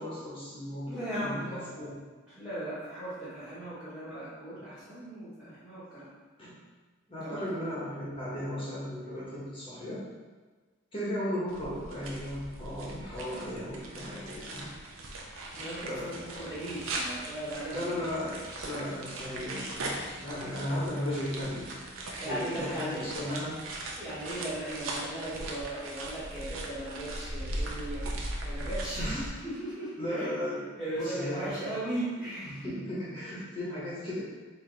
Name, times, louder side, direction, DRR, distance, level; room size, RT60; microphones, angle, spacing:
voice 1, 0.0-1.9 6.4-6.6 7.1-10.1 10.9-14.7 15.8-16.1 17.7-21.7 22.2-23.6 29.0-29.3 30.0-30.6 30.9-31.7 32.4-34.2, left 1 dB, 25° left, -8 dB, 1.1 m, -36 dB
voice 2, 0.9-1.8 2.3-6.1 7.1-7.4 15.5-18.2 22.2-23.1 24.0-30.3 30.8-32.8, right 1 dB, 5° right, -15 dB, 1.4 m, -38 dB
sound 1, 11.5-29.3, right 1 dB, 80° right, 0.7 m, -39 dB
4.7 x 2.9 x 3.9 m, 1.4 s
head